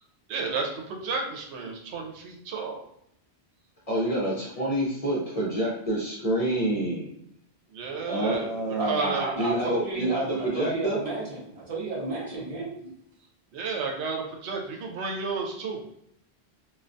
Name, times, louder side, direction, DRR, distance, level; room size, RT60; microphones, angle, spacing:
voice 1, 0.3-2.8 7.7-9.3 13.5-15.8, right 4 dB, 90° right, 1 dB, 0.9 m, -32 dB
voice 2, 3.9-7.1 8.0-11.0, right 1 dB, 45° left, -5 dB, 0.6 m, -27 dB
voice 3, 8.8-12.7, right 3 dB, 40° right, -4 dB, 0.6 m, -32 dB
2.3 x 2.2 x 2.5 m, 0.74 s
omnidirectional pair, 1.1 m